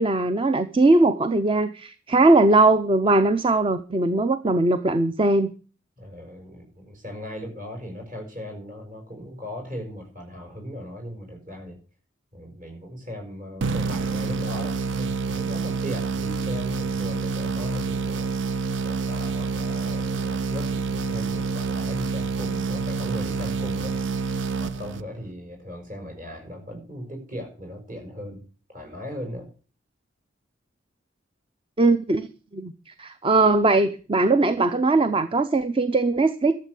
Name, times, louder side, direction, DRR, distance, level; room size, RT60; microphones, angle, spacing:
voice 1, 0.0-5.5 31.8-32.3 32.5-36.6, right 2 dB, 25° right, 12 dB, 0.6 m, -20 dB
voice 2, 6.0-11.8 12.3-18.3 18.8-24.0 24.6-29.5, equal, 45° right, 3 dB, 6.1 m, -38 dB
sound 1, 13.6-25.3, right 4 dB, 70° right, 0.6 m, -28 dB
12.5 x 7.5 x 8.2 m, 0.38 s
head